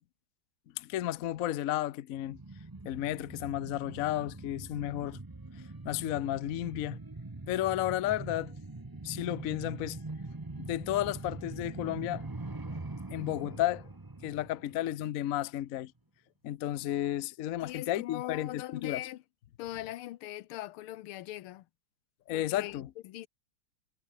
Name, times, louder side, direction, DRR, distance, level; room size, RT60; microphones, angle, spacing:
voice 1, 0.8-2.4 2.8-5.2 5.5-7.0 7.5-8.5 9.0-10.0 10.6-12.3 12.7-12.8 13.1-13.9 14.2-15.9 16.4-19.0 22.3-22.9, left 13 dB, 65° left, 0.8 m, -33 dB
sound 1, 2.2-15.4 15.7-15.8, right 2 dB, 20° right, 0.6 m, -43 dB
voice 2, 17.6-19.2 19.6-21.7 22.3-23.3, left 15 dB, 90° left, 1.7 m, -41 dB
omnidirectional pair, 2.3 m